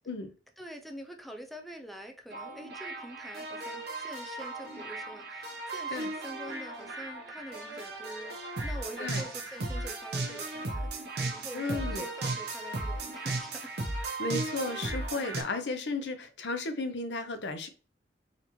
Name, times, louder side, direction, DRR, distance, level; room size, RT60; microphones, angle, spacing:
voice 1, 0.6-13.7, equal, ahead, 0.4 m, -46 dB
sound 1, 2.3-15.4, right 2 dB, 65° right, 0.9 m, -36 dB
voice 2, 11.5-12.0 14.2-17.7, left 3 dB, 70° left, 0.6 m, -34 dB
4.1 x 2.9 x 3.0 m
head